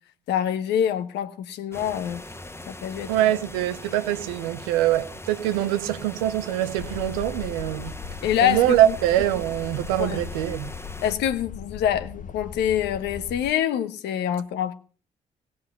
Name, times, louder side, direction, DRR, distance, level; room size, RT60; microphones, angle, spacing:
voice 1, 0.3-2.2 2.7-3.1 8.2-8.9 10.0-10.2 11.0-14.7, left 10 dB, 75° left, 1.2 m, -25 dB
sound 1, 1.7-11.2, left 2 dB, 15° left, 1.4 m, -41 dB
voice 2, 3.1-8.0 8.4-10.7, right 13 dB, 90° right, 0.7 m, -23 dB
sound 2, 6.8-13.5, left 6 dB, 50° left, 0.8 m, -38 dB
17.5 x 6.2 x 8.4 m
hypercardioid pair, 45°, 18 cm